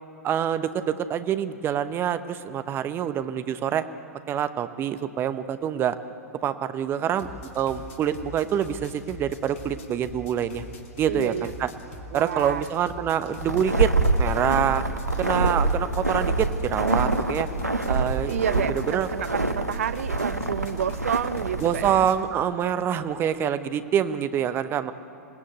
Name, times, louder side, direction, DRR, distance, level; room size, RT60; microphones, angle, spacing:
voice 1, 0.2-3.8 4.3-6.0 6.4-10.6 11.0-11.7 12.1-13.9 14.2-14.8 15.2-17.5 17.9-18.6 18.9-19.1 21.6-24.9, right 9 dB, 25° right, 11 dB, 0.9 m, -26 dB
sound 1, 7.2-22.2, left 1 dB, 55° left, 3.1 m, -43 dB
voice 2, 11.1-11.5 12.1-12.7 18.3-22.3, right 9 dB, 60° right, 14 dB, 0.8 m, -30 dB
sound 2, 13.4-21.9, right 2 dB, 90° right, 1.2 m, -26 dB
27.5 x 18.5 x 8.1 m, 3.0 s
figure-of-eight pair, 95°, 8 cm